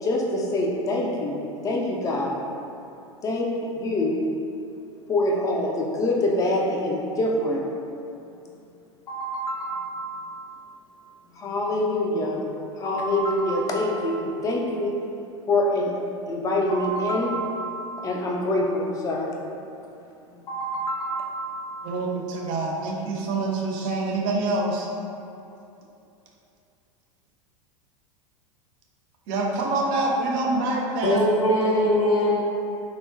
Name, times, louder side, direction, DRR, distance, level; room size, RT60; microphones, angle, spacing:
voice 1, 0.0-2.3 3.2-4.2 5.1-7.6 9.1-10.9 11.4-12.4 12.8-14.9 15.5-19.3 20.5-22.0, left 1 dB, 20° left, -1 dB, 0.4 m, -26 dB
voice 2, 21.8-24.9 29.3-31.2, right 2 dB, 45° right, -1 dB, 0.5 m, -26 dB
voice 3, 31.0-32.4, left 1 dB, 85° left, -6 dB, 0.7 m, -21 dB
3.6 x 2.0 x 2.4 m, 2.7 s
figure-of-eight pair, 85°, 17 cm